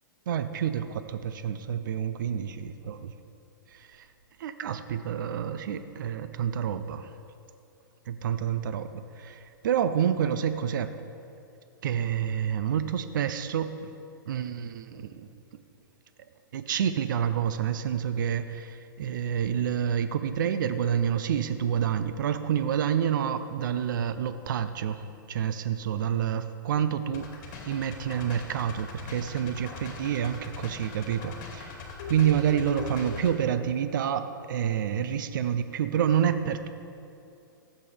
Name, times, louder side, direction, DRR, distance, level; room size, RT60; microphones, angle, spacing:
voice 1, 0.3-3.1 3.7-4.1 4.4-7.1 8.1-8.9 9.2-10.9 11.8-13.9 14.3-15.3 16.5-27.3 27.7-36.7, right 9 dB, 65° right, 10 dB, 0.6 m, -28 dB
sound 1, 27.1-33.4, left 4 dB, 50° left, 2.5 m, -41 dB
15.5 x 7.6 x 3.4 m, 2.6 s
hypercardioid pair, 120°, 11 cm